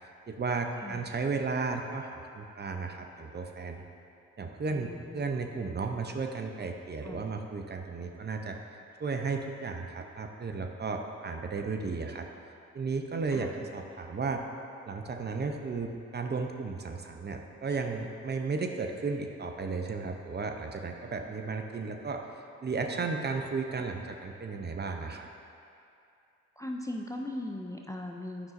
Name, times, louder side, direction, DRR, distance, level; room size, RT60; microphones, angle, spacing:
voice 1, 0.3-3.8 4.4-8.6 9.0-12.3 12.7-14.4 14.9-22.2 22.6-25.3, right 4 dB, 30° right, 3 dB, 0.7 m, -34 dB
voice 2, 4.7-5.2 7.0-7.3 13.3-13.5 26.6-28.5, left 1 dB, 10° left, 1 dB, 0.5 m, -39 dB
9.8 x 5.4 x 2.6 m, 2.6 s
hypercardioid pair, 50°, 34 cm